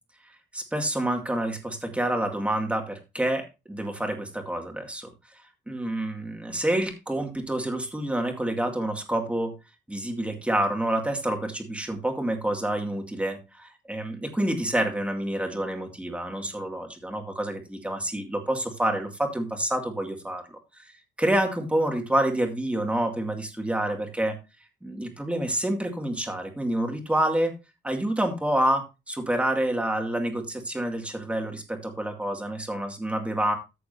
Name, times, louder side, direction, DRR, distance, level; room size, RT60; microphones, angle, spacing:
voice 1, 0.5-5.1 5.7-9.5 9.9-20.9 21.2-24.4 24.8-27.5 27.8-33.6, right 1 dB, 5° right, 3 dB, 2.3 m, -28 dB
14.5 x 6.8 x 2.7 m, 0.27 s
cardioid pair, 130°, 18 cm